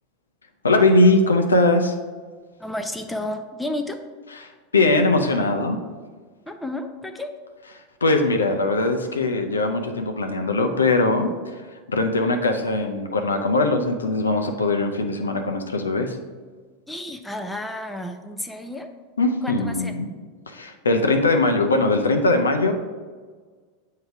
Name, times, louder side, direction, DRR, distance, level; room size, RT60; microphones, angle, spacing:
voice 1, 0.6-1.9 4.4-5.8 8.0-11.5 11.9-16.2 19.2-20.1 20.5-22.7, left 2 dB, 85° left, 5 dB, 0.6 m, -20 dB
voice 2, 2.6-4.0 6.5-7.3 16.9-18.9 19.4-19.9, left 1 dB, 5° left, 6 dB, 0.6 m, -31 dB
7.7 x 2.8 x 4.6 m, 1.5 s
hypercardioid pair, 90°, 0 cm